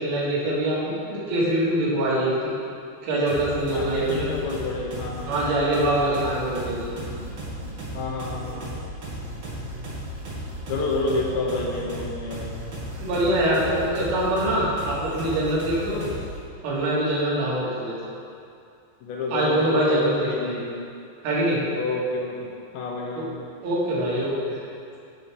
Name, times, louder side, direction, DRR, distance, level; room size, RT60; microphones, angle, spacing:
voice 1, 0.0-2.5 3.0-4.3 5.3-6.9 13.0-16.0 16.6-18.0 19.3-20.6 21.2-21.6 23.1-23.2 23.6-24.6, right 1 dB, 85° right, -7 dB, 4.4 m, -24 dB
sound 1, 3.3-16.4, right 1 dB, 45° right, 2.7 m, -35 dB
voice 2, 3.7-5.3 7.9-8.6 10.7-12.5 19.0-20.8 21.7-22.5 22.7-23.3, left 3 dB, 75° left, -1 dB, 2.9 m, -29 dB
13.5 x 6.3 x 3.6 m, 2.4 s
omnidirectional pair, 5.4 m